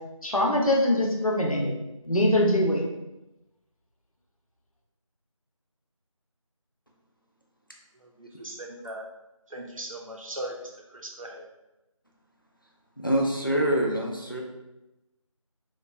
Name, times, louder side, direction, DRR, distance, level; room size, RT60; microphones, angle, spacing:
voice 1, 0.2-1.7 2.1-2.8, left 1 dB, 85° left, -1 dB, 0.7 m, -23 dB
voice 2, 8.0-9.1 9.5-11.4, right 1 dB, 70° right, 0 dB, 0.6 m, -39 dB
voice 3, 13.0-14.4, right 1 dB, 40° left, 0 dB, 0.4 m, -25 dB
2.9 x 2.2 x 2.4 m, 0.94 s
figure-of-eight pair, 175°, 18 cm